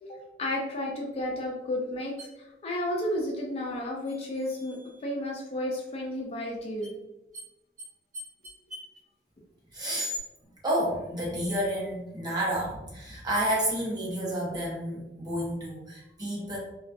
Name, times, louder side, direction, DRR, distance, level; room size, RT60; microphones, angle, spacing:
voice 1, 0.0-4.8 5.0-6.9, left 1 dB, 35° left, -1 dB, 0.3 m, -32 dB
sound 1, 2.2-2.3 4.0-5.1 6.8-6.9 7.3-7.5 7.8-7.9 8.1-9.0 9.9-10.2, left 1 dB, 50° right, 1.0 m, -40 dB
voice 2, 9.7-10.1 10.6-16.6, right 1 dB, 25° right, -6 dB, 0.8 m, -30 dB
2.2 x 2.2 x 2.5 m, 0.96 s
head